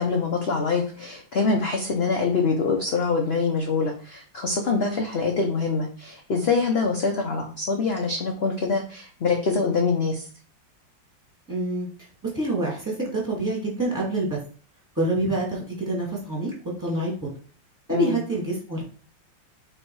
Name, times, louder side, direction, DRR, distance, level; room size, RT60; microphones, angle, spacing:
voice 1, 0.0-10.2 17.9-18.2, left 4 dB, 45° left, 2 dB, 0.8 m, -24 dB
voice 2, 11.5-11.9 12.3-14.4 15.0-16.5 16.8-17.3 17.9-18.8, right 2 dB, 10° right, -5 dB, 2.4 m, -26 dB
6.6 x 3.3 x 4.7 m, 0.41 s
omnidirectional pair, 2.1 m